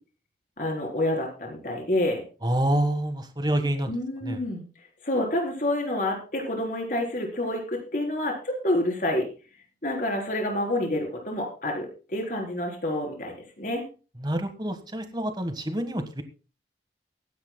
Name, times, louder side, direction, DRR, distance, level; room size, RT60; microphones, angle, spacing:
voice 1, 0.6-2.2 3.9-4.6 5.0-9.2 9.8-13.8, left 1 dB, 50° left, 1 dB, 4.0 m, -28 dB
voice 2, 2.4-3.9 4.2-4.4 14.2-16.2, right 1 dB, 25° right, 8 dB, 1.5 m, -27 dB
23.5 x 10.5 x 2.3 m, 0.34 s
head